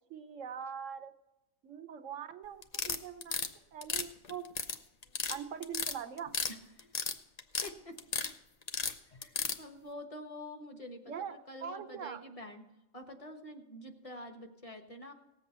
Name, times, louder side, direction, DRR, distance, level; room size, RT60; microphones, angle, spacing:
voice 1, 0.1-1.1 1.6-4.5 5.3-6.3 11.1-12.2, right 8 dB, 65° right, 9 dB, 1.1 m, -42 dB
sound 1, 2.6-3.5 3.8-4.8 5.0-5.4 5.6-6.5 6.8-7.7 8.0-8.3 8.7-9.6, left 5 dB, 45° left, 0.6 m, -33 dB
voice 2, 7.6-8.0 9.2-12.6 12.9-15.1, left 1 dB, 25° left, 5 dB, 1.3 m, -47 dB
18.0 x 7.9 x 4.2 m, 0.96 s
omnidirectional pair, 1.5 m